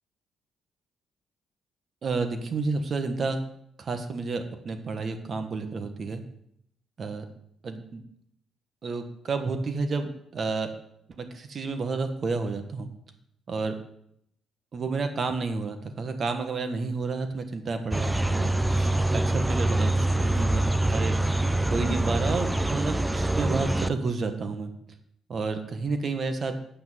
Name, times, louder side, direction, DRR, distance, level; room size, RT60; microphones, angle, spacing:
voice 1, 2.0-3.4 3.8-6.2 7.0-7.2 7.6-7.8 8.8-10.7 11.2-12.9 13.5-13.7 14.7-21.4 21.7-24.7 25.3-26.5, right 4 dB, 45° right, 7 dB, 1.4 m, -30 dB
sound 1, 17.9-23.9, right 1 dB, 10° right, 0.5 m, -25 dB
8.6 x 6.1 x 7.5 m, 0.74 s
cardioid pair, 90°, 0 cm